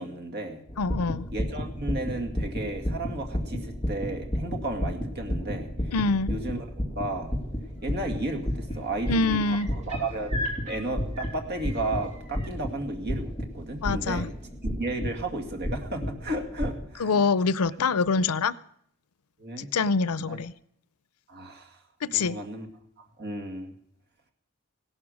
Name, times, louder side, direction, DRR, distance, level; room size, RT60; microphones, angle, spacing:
voice 1, 0.0-0.6 1.3-5.7 6.3-6.6 7.0-7.3 7.8-10.4 10.7-14.3 14.8-17.2 19.4-19.7 20.3-20.4 21.3-21.8 22.1-22.7 23.2-23.7, right 2 dB, 50° right, 4 dB, 2.2 m, -33 dB
sound 1, 0.7-16.9, equal, 10° left, 2.1 m, -33 dB
voice 2, 0.8-1.3 5.9-6.3 9.1-9.7 13.8-14.3 17.0-18.5 19.6-20.5 22.0-22.4, left 4 dB, 90° left, 18 dB, 0.6 m, -25 dB
sound 2, 7.8-8.2 8.4-12.5 14.2-14.3, left 1 dB, 35° right, 3.2 m, -39 dB
16.5 x 12.0 x 6.4 m, 0.68 s
head